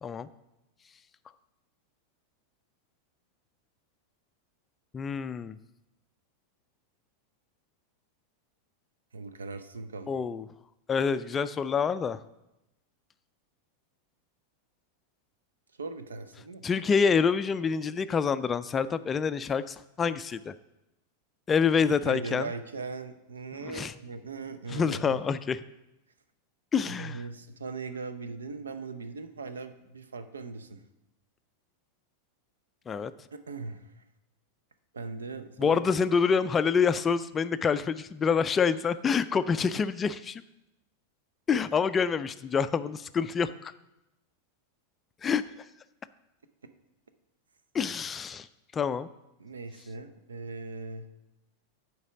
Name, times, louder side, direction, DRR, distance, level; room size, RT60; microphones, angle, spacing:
voice 1, 4.9-5.6 10.1-10.4 10.9-12.2 16.6-20.5 21.5-22.5 23.6-23.9 24.7-25.6 26.7-27.2 32.9-33.1 35.6-40.4 41.5-43.7 45.2-45.4 47.7-48.5 48.7-49.1, left 6 dB, 20° left, 14 dB, 0.3 m, -27 dB
voice 2, 9.1-10.1 15.8-16.6 21.8-25.2 26.9-30.8 33.3-33.9 34.9-35.8 49.4-51.1, right 3 dB, 70° right, 10 dB, 0.6 m, -39 dB
8.1 x 4.7 x 6.9 m, 0.91 s
figure-of-eight pair, 90°, 0 cm